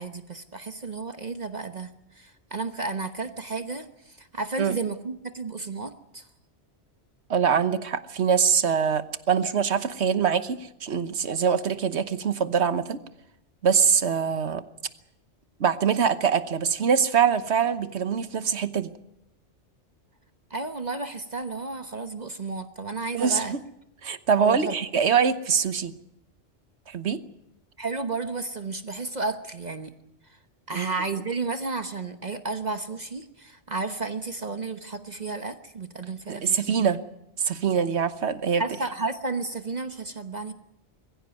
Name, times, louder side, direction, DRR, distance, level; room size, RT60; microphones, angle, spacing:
voice 1, 0.0-6.3 20.5-23.6 24.4-24.7 27.8-29.9 30.2-30.4 30.7-37.0 38.6-40.5, right 3 dB, 40° right, 8 dB, 1.1 m, -32 dB
voice 2, 7.3-13.0 13.6-14.6 15.6-18.9 23.1-23.6 24.0-25.9 26.9-27.2 30.7-30.9 36.3-37.0 37.4-38.6, right 7 dB, 75° right, 12 dB, 1.3 m, -24 dB
22.0 x 15.5 x 9.3 m, 0.85 s
omnidirectional pair, 1.2 m